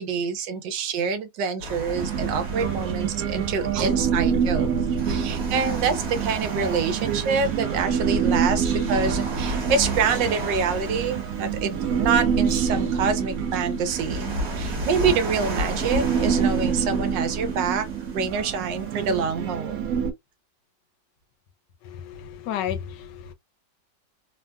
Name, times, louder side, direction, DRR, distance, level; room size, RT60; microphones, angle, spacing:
voice 1, 0.0-4.7 5.1-14.3 14.6-17.9 18.1-19.8, right 5 dB, 85° right, 1.4 m, -26 dB
sound 1, 1.6-19.2, equal, 45° right, 1.2 m, -35 dB
Human voice, 1.9-20.1, right 6 dB, 65° right, 1.0 m, -27 dB
voice 2, 21.8-23.3, left 9 dB, 85° left, 1.3 m, -32 dB
3.4 x 2.2 x 2.2 m
omnidirectional pair, 1.9 m